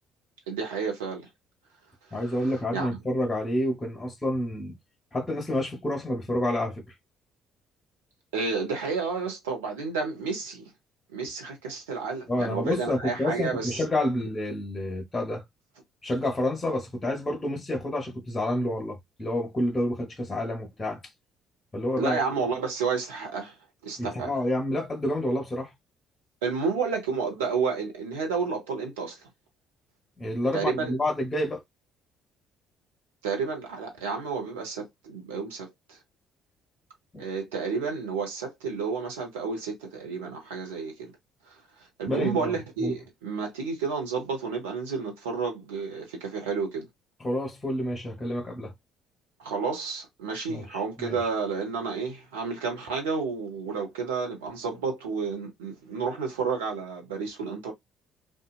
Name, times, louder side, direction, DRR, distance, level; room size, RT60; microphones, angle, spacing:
voice 1, 0.5-1.3 2.7-3.0 8.3-10.7 11.1-13.8 22.0-23.5 23.8-24.3 26.4-29.2 30.5-30.9 33.2-36.0 37.2-41.1 41.5-41.6 42.0-46.9 49.4-57.7, right 5 dB, 75° right, 0.8 m, -31 dB
voice 2, 2.1-4.8 5.1-6.8 12.3-15.4 16.0-21.0 21.7-22.2 24.0-25.7 30.2-31.6 37.1-37.3 42.1-43.0 47.2-48.7 50.5-51.2, left 1 dB, 20° left, 1.0 m, -29 dB
2.7 x 2.4 x 2.3 m
figure-of-eight pair, 50°, 0 cm